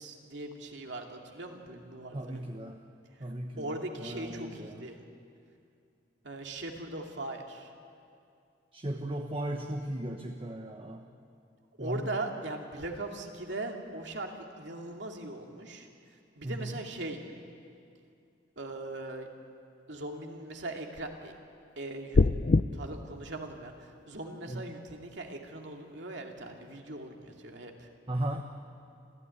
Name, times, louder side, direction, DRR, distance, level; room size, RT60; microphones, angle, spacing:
voice 1, 0.0-2.4 3.6-5.0 6.2-7.7 11.8-15.9 16.4-17.2 18.6-19.3 19.9-21.3 21.8-22.2 22.7-27.9, right 2 dB, 70° right, 2 dB, 2.5 m, -40 dB
voice 2, 2.1-2.8 3.2-4.8 8.7-11.0 11.8-12.2 16.4-16.7 24.5-24.6 28.1-28.4, right 1 dB, 30° right, 4 dB, 1.1 m, -36 dB
sound 1, 22.1-22.6, left 3 dB, 45° left, 0.5 m, -21 dB
27.0 x 15.5 x 9.8 m, 2.5 s
head